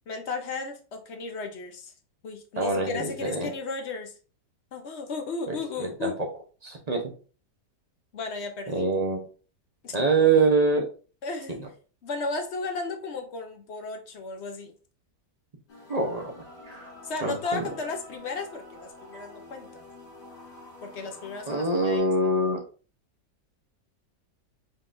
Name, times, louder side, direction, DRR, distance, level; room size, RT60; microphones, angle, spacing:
voice 1, 0.1-1.9 2.2-4.1 4.7-6.2 8.1-8.9 9.8-9.9 11.2-11.6 12.0-14.7 17.0-19.7 20.8-22.0, left 4 dB, 55° left, 5 dB, 0.8 m, -34 dB
voice 2, 2.6-3.5 5.5-6.1 6.6-7.0 8.7-9.2 9.9-10.8 11.6-11.7 15.9-16.3 16.7-16.9 17.2-17.6 21.5-22.6, right 3 dB, 35° right, 0 dB, 0.7 m, -24 dB
sound 1, 15.7-22.0, left 1 dB, 75° left, 2.4 m, -48 dB
4.8 x 4.0 x 2.6 m, 0.37 s
omnidirectional pair, 1.8 m